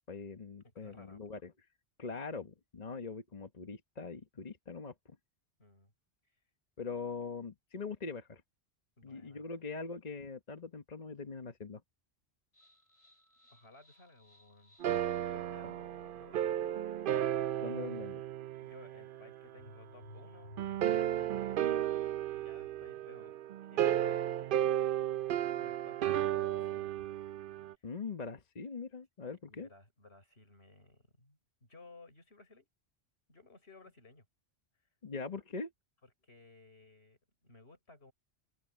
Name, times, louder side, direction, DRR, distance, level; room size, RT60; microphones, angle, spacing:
voice 1, 0.1-1.5 2.0-4.9 6.8-8.4 9.0-11.8 17.6-18.3 27.8-29.7 35.0-35.7, left 4 dB, 40° left, 1.2 m, -42 dB
voice 2, 0.6-1.2 5.6-5.9 6.2-6.4 9.0-9.5 13.5-14.8 15.1-16.9 18.6-23.4 23.6-24.7 25.6-27.1 27.8-27.9 29.3-32.7 33.3-34.3 36.0-38.1, left 3 dB, 70° left, 5.9 m, -59 dB
sound 1, 12.5-23.1, left 1 dB, 90° left, 6.5 m, -60 dB
sound 2, 14.8-19.4 20.6-27.7, right 11 dB, 60° right, 0.7 m, -34 dB
open air
omnidirectional pair, 1.1 m